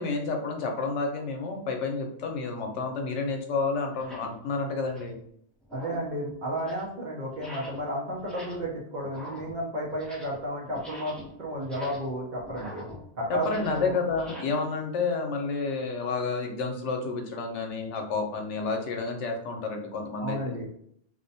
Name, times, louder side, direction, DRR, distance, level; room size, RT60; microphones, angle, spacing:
voice 1, 0.0-5.2 13.3-20.5, left 4 dB, 90° left, 3 dB, 0.9 m, -30 dB
sound 1, 2.4-2.5 3.3-3.4 3.9-4.4 4.8-5.2 5.6-6.2 6.5-6.9 7.3-7.9 8.2-8.7 9.0-10.5 10.7-14.4, equal, ahead, 0.3 m, -45 dB
voice 2, 5.7-12.8 13.2-13.9 20.2-20.7, equal, 55° right, -2 dB, 0.6 m, -32 dB
2.4 x 2.1 x 2.6 m, 0.69 s
omnidirectional pair, 1.2 m